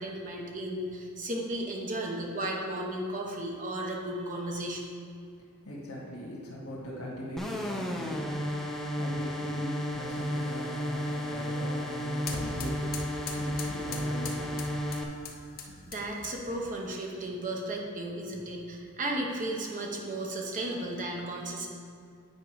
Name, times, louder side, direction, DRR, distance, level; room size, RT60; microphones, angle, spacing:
voice 1, 0.0-4.9 15.6-21.7, right 1 dB, 35° right, 0 dB, 0.8 m, -34 dB
voice 2, 5.6-14.6 15.0-15.5, equal, 80° left, -5 dB, 1.7 m, -41 dB
sound 1, 7.4-15.0, equal, ahead, 0.5 m, -33 dB
sound 2, 9.9-16.6, left 4 dB, 45° left, 0.8 m, -43 dB
8.5 x 5.2 x 4.9 m, 2.3 s
head